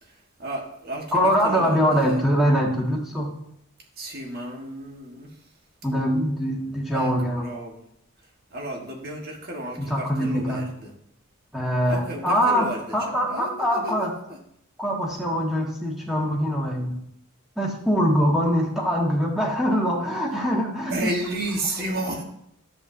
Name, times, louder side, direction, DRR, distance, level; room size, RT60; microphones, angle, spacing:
voice 1, 0.0-2.2 4.0-5.4 6.9-7.8 8.5-10.9 11.8-12.9 13.3-14.4 20.9-22.2, right 1 dB, 45° right, 0 dB, 1.5 m, -33 dB
voice 2, 1.1-3.3 5.8-7.4 9.8-10.6 11.5-14.1 14.8-17.0 17.6-21.1, equal, ahead, -4 dB, 1.7 m, -23 dB
10.5 x 7.6 x 2.7 m, 0.75 s
head